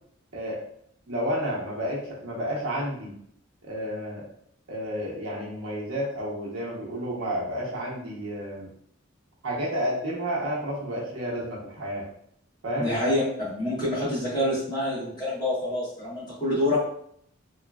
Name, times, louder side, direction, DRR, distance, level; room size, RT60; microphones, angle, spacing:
voice 1, 1.1-3.1 3.6-4.3 4.7-8.7 9.4-12.1 12.6-13.2, equal, 75° right, -4 dB, 0.9 m, -31 dB
voice 2, 12.8-13.2 13.6-16.8, left 1 dB, 20° left, -9 dB, 1.2 m, -27 dB
3.0 x 2.2 x 2.3 m, 0.66 s
head